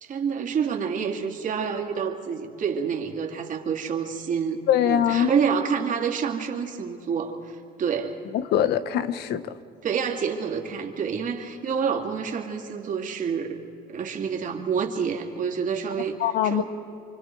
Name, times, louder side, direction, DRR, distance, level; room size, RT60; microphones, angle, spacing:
voice 1, 0.0-8.2 9.8-13.6 13.9-16.2 16.4-16.6, right 6 dB, 50° right, 2 dB, 2.6 m, -28 dB
voice 2, 4.7-5.3 8.3-9.4 16.2-16.6, left 10 dB, 75° left, 13 dB, 1.0 m, -22 dB
28.5 x 24.5 x 4.7 m, 2.7 s
cardioid pair, 110°, 17 cm